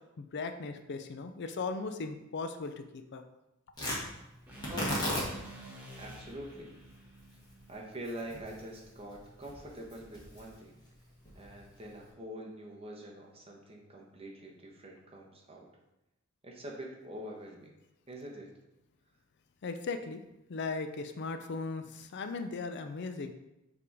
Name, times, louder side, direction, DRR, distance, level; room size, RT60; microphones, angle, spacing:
voice 1, 0.2-2.7 3.1-3.2 19.6-20.2 20.5-23.3, left 4 dB, 50° left, 8 dB, 0.4 m, -37 dB
Tearing, 3.7-12.1, equal, 20° left, 1.7 m, -39 dB
sound 1, 4.5-8.6, right 1 dB, 10° right, 1.2 m, -50 dB
voice 2, 4.7-5.0 6.0-6.7 7.7-10.8 11.3-15.7 16.4-17.7 18.1-18.5, right 1 dB, 25° right, -1 dB, 1.1 m, -45 dB
6.8 x 3.5 x 4.8 m, 0.93 s
head